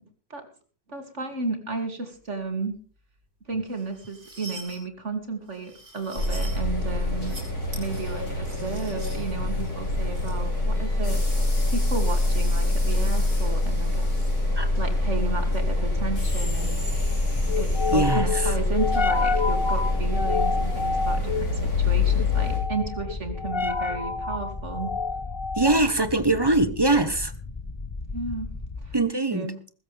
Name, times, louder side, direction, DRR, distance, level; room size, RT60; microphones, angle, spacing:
voice 1, 0.9-2.8 3.4-7.4 7.7-11.2 11.7-14.1 14.4-16.8 17.6-24.9 28.1-28.5 28.8-29.0 29.3-29.6, right 4 dB, 50° right, 6 dB, 3.0 m, -33 dB
sound 1, 3.7-4.8 5.5-6.6 7.1-7.4 7.7-10.3, right 2 dB, 70° right, 8.5 m, -44 dB
sound 2, 6.2-22.6, left 2 dB, 80° left, 6.5 m, -25 dB
sound 3, 15.8-29.0, left 4 dB, 25° left, 0.7 m, -30 dB
voice 2, 17.9-18.3 25.6-27.3 28.9-29.5, right 2 dB, 20° right, 12 dB, 0.9 m, -22 dB
20.5 x 15.5 x 3.4 m, 0.39 s
omnidirectional pair, 1.6 m